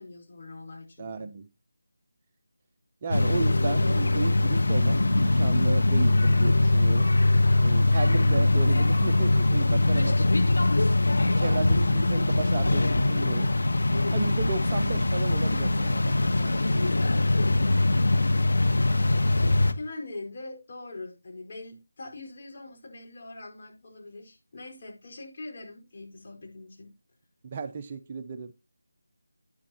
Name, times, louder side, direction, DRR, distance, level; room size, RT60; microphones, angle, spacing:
voice 1, 0.0-1.3 11.6-11.8 19.7-26.9, left 2 dB, 40° left, 4.9 m, -42 dB
voice 2, 1.0-1.5 3.0-7.1 7.6-10.3 11.4-13.5 14.1-16.5 27.4-28.5, right 5 dB, 25° right, 0.6 m, -34 dB
sound 1, 3.1-19.7, left 2 dB, 70° left, 1.3 m, -22 dB
11.0 x 10.0 x 3.0 m
figure-of-eight pair, 165°, 0 cm